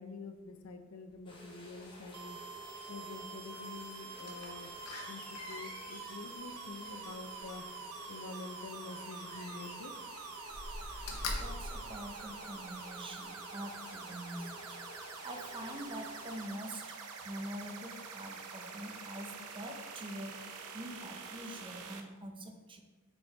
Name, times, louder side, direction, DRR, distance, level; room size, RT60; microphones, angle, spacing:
voice 1, 0.0-2.4 2.9-4.7 5.1-7.6 8.1-9.9, left 3 dB, 70° left, 7 dB, 0.6 m, -47 dB
sound 1, 1.3-16.5, left 1 dB, 25° left, 1.2 m, -53 dB
sound 2, 2.1-22.0, right 4 dB, 85° right, 0.7 m, -46 dB
Slam, 4.2-8.0 9.1-10.1 10.4-12.7 13.2-13.3, left 2 dB, 90° left, 1.0 m, -44 dB
voice 2, 11.4-14.8 15.2-17.0 17.2-22.8, right 1 dB, 25° right, 4 dB, 0.6 m, -45 dB
7.1 x 4.5 x 3.3 m, 1.3 s
head